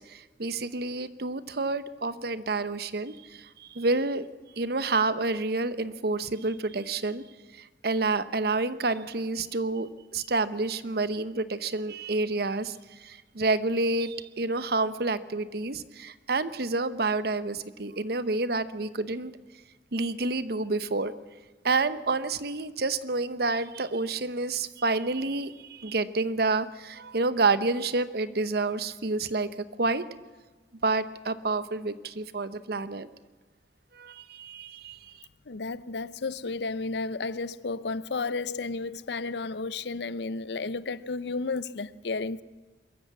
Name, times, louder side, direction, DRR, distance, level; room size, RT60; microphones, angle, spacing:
voice 1, 0.0-4.3 4.6-7.2 7.6-12.8 13.0-19.3 19.9-21.1 21.6-29.5 29.8-30.0 30.8-33.1 34.0-35.3, right 3 dB, 60° right, 0.9 m, -29 dB
voice 2, 35.5-42.4, left 3 dB, 70° left, 0.6 m, -32 dB
22.0 x 14.0 x 8.5 m
head